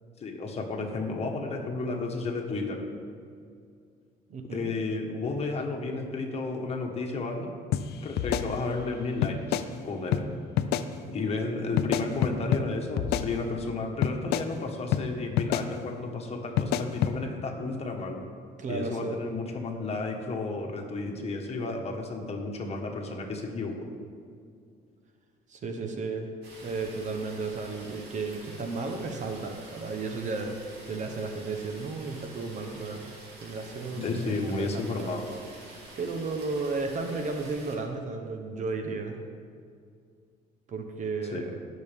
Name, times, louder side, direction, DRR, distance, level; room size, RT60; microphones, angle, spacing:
voice 1, 0.2-2.8 4.5-7.5 8.0-10.3 11.1-18.3 18.7-23.8 33.9-35.3 41.2-41.5, left 3 dB, 40° left, 1 dB, 1.6 m, -32 dB
voice 2, 4.3-4.7 18.6-19.2 25.5-26.3 26.6-33.1 33.4-35.2 36.0-39.2 40.7-41.5, right 3 dB, 45° right, 4 dB, 1.1 m, -34 dB
sound 1, 7.7-7.8 8.2-8.9 9.2-9.7 10.1-10.2 10.6-10.9 11.8-12.6 13.0-13.7 14.0-14.5 14.9-15.0 15.4-15.7 16.6-17.1, left 10 dB, 75° left, 0.5 m, -27 dB
sound 2, 26.4-37.8, right 2 dB, 85° right, 2.8 m, -48 dB
17.5 x 6.4 x 3.6 m, 2.2 s
cardioid pair, 110°, 17 cm